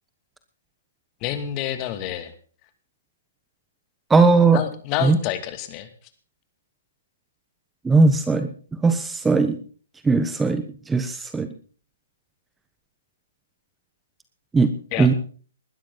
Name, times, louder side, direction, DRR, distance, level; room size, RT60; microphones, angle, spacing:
voice 1, 1.2-2.3 4.5-5.9 14.9-15.1, left 12 dB, 30° left, 10 dB, 2.6 m, -28 dB
voice 2, 4.1-4.6 5.0-5.2 7.8-8.5 8.8-9.6 10.0-11.5 14.5-14.7 15.0-15.1, right 4 dB, 10° right, 10 dB, 1.3 m, -18 dB
20.0 x 13.0 x 4.1 m, 0.42 s
hypercardioid pair, 135°, 0 cm